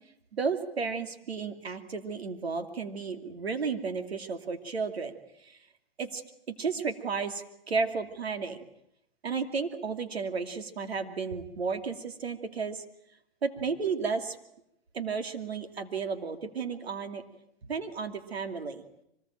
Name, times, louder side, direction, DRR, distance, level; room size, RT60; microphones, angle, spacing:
voice 1, 0.3-5.1 5.4-5.6 6.0-6.2 6.6-8.6 9.2-12.8 13.4-14.4 14.9-17.2 17.6-18.8, right 5 dB, 90° right, 7 dB, 2.7 m, -33 dB
24.5 x 20.0 x 9.0 m, 0.81 s
hypercardioid pair, 125°, 30 cm